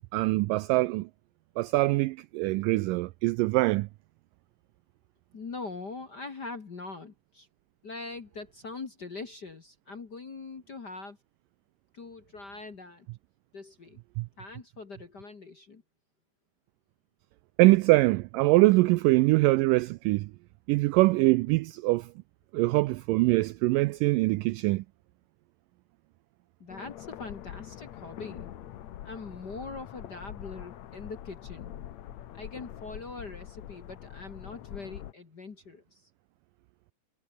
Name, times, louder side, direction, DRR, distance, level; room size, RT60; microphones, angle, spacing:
voice 1, 0.1-1.1 1.6-3.9 14.2-14.3 17.6-20.3 20.7-22.1 22.5-24.8, right 21 dB, 90° right, 1.9 m, -23 dB
voice 2, 5.3-7.5 7.8-11.2 11.9-13.1 13.5-14.0 14.4-15.8 26.6-28.5 29.0-31.7 32.3-36.1, left 3 dB, 40° left, 1.6 m, -42 dB
sound 1, 26.7-35.1, left 11 dB, 60° left, 2.1 m, -44 dB
omnidirectional pair, 4.4 m